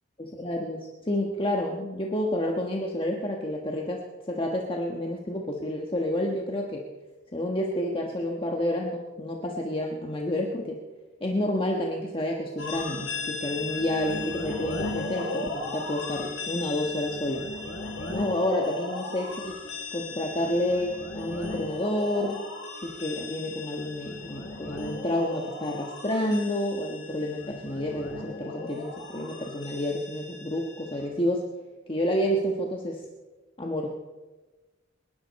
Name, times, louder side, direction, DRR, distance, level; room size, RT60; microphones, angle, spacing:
voice 1, 0.2-6.9 7.3-10.8 11.2-17.5 18.1-19.5 19.9-22.4 22.8-31.5 31.9-33.0 33.6-33.9, left 1 dB, 30° left, 0 dB, 1.3 m, -29 dB
sound 1, 12.6-31.1, left 3 dB, 65° left, 5.0 m, -37 dB
27.0 x 11.5 x 4.2 m, 1.2 s
head